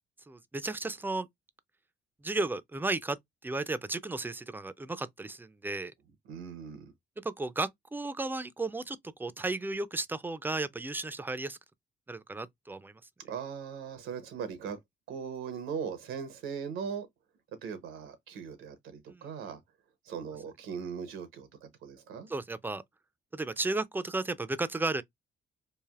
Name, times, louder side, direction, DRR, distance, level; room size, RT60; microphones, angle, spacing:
voice 1, 0.3-1.3 2.2-3.2 3.4-5.9 7.2-11.6 12.1-12.9 19.1-19.3 22.3-22.8 23.3-25.0, right 2 dB, 10° right, 0.3 m, -34 dB
voice 2, 6.3-6.8 13.3-14.8 15.1-17.1 17.6-19.6 20.0-22.3, right 6 dB, 90° right, 0.8 m, -39 dB
3.3 x 2.4 x 2.3 m
cardioid pair, 90°, 20 cm